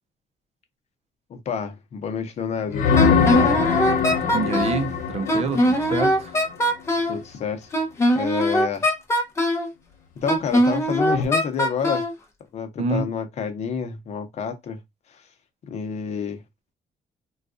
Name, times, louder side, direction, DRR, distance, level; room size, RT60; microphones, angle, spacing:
voice 1, 1.3-3.6 7.1-7.7 8.1-8.9 10.2-12.0 12.5-14.8 15.1-15.2 15.7-16.4, left 6 dB, 50° left, 0.8 m, -29 dB
sound 1, 2.7-6.6 11.1-11.2, left 6 dB, 85° left, 1.0 m, -22 dB
Wind instrument woodwind instrument, 2.9-4.8 5.3-7.2 7.7-9.7 10.3-12.1, equal, 20° left, 0.7 m, -21 dB
voice 2, 4.2-6.4 12.8-13.1, right 4 dB, 50° right, 0.6 m, -27 dB
3.9 x 2.4 x 2.5 m
cardioid pair, 165°, 14 cm